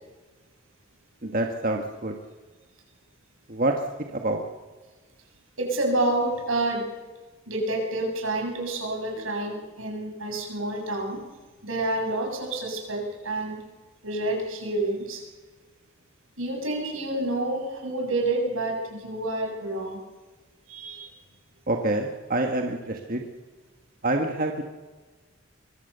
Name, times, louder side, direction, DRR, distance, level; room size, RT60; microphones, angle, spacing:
voice 1, 1.2-2.1 3.5-3.7 4.1-4.4 21.7-23.2 24.0-24.6, right 2 dB, 45° right, 3 dB, 1.6 m, -26 dB
voice 2, 5.6-6.9 7.5-11.3 11.6-13.6 14.0-15.2 16.4-20.0 20.7-21.1, right 2 dB, 80° right, 2 dB, 7.2 m, -28 dB
24.0 x 23.0 x 6.9 m, 1.3 s
head